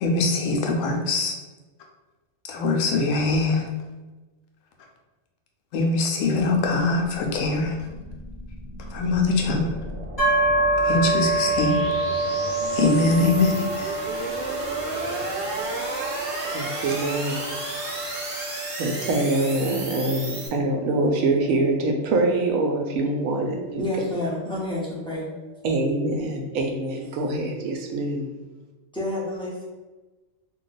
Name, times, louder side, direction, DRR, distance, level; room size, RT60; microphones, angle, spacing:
voice 1, 0.0-1.3 2.5-3.7 5.7-7.8 8.9-9.7 10.8-11.8 12.7-14.0, left 3 dB, 80° left, 1 dB, 1.0 m, -22 dB
sound 1, 7.1-20.5, right 1 dB, 40° right, 0.4 m, -34 dB
sound 2, 10.2-23.9, right 2 dB, 35° left, 1.1 m, -28 dB
voice 2, 16.5-17.4 18.0-18.3 18.8-23.8 25.6-28.3, right 2 dB, 90° right, 2 dB, 1.0 m, -24 dB
voice 3, 23.8-25.3 28.9-29.6, left 1 dB, 5° left, -8 dB, 0.7 m, -29 dB
2.6 x 2.3 x 3.9 m, 1.2 s
omnidirectional pair, 1.3 m